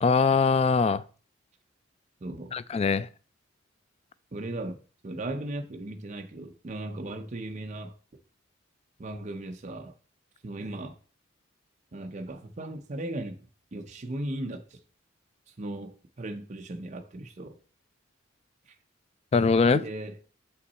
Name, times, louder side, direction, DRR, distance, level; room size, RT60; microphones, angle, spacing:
voice 1, 0.0-1.0 2.5-3.1 19.3-19.8, left 5 dB, 30° left, 0.3 m, -22 dB
voice 2, 2.2-2.6 4.3-8.0 9.0-9.9 10.4-10.9 11.9-13.4 13.7-14.8 15.6-17.6 18.7-18.8 19.7-20.2, right 1 dB, 40° right, 0.6 m, -37 dB
6.3 x 5.7 x 4.1 m
head